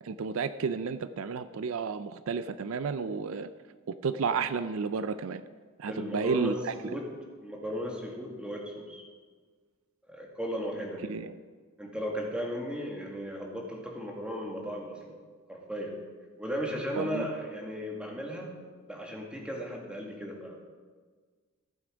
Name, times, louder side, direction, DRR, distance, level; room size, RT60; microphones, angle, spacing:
voice 1, 0.0-3.5 3.9-5.4 5.8-6.7 11.1-11.4 17.0-17.3, right 5 dB, 70° right, 13 dB, 0.4 m, -32 dB
voice 2, 5.9-6.6 6.8-7.1 7.4-9.0 10.1-11.2 11.8-15.1 15.5-16.0 16.4-18.5 18.9-20.6, equal, 5° right, -1 dB, 1.8 m, -36 dB
14.0 x 7.9 x 5.1 m, 1.5 s
head